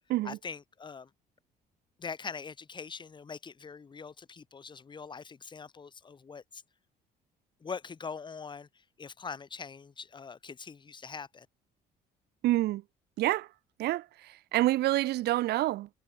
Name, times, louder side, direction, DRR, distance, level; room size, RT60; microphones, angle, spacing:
voice 1, 0.2-1.1 2.0-6.6 7.6-11.5, left 5 dB, 25° left, 1.7 m, -43 dB
voice 2, 12.4-12.8 13.2-13.5 13.8-15.9, right 16 dB, 75° right, 1.1 m, -28 dB
cardioid pair, 110°, 17 cm